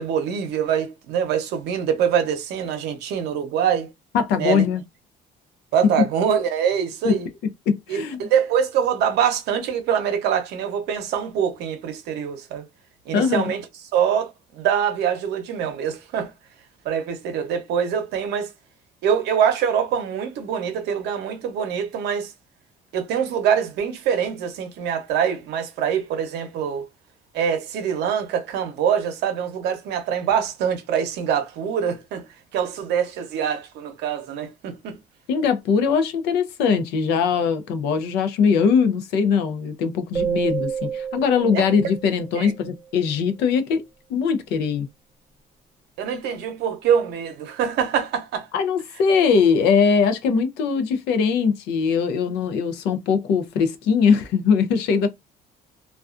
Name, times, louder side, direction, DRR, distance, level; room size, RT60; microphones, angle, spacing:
voice 1, 0.0-3.9 4.3-4.6 5.7-7.3 7.9-12.7 13.1-13.6 13.9-16.3 16.8-18.5 19.0-22.3 22.9-26.9 27.3-32.3 32.5-35.0 41.5-41.6 42.4-42.5 46.0-48.5, right 8 dB, 80° right, 0.7 m, -24 dB
voice 2, 4.1-4.8 7.0-7.1 7.7-8.3 13.1-13.5 35.3-43.8 44.1-44.9 48.5-55.1, left 6 dB, 85° left, 0.5 m, -21 dB
sound 1, 40.1-42.8, right 7 dB, 15° right, 0.4 m, -29 dB
2.3 x 2.3 x 2.4 m
cardioid pair, 110°, 17 cm